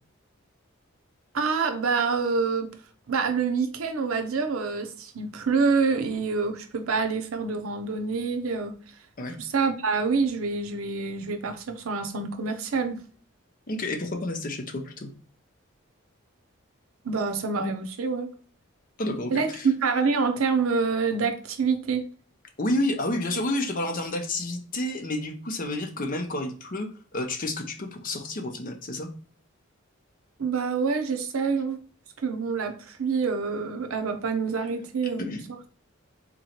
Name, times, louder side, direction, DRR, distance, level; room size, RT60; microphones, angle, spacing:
voice 1, 1.3-2.7 3.1-8.7 9.4-13.0 17.0-18.3 19.3-22.1 30.4-31.8 32.2-35.4, right 4 dB, 90° right, 0.6 m, -26 dB
voice 2, 13.7-15.1 19.0-19.7 22.6-26.9 27.1-29.1 35.2-35.4, left 1 dB, 40° left, 0.7 m, -30 dB
3.8 x 3.0 x 2.8 m
head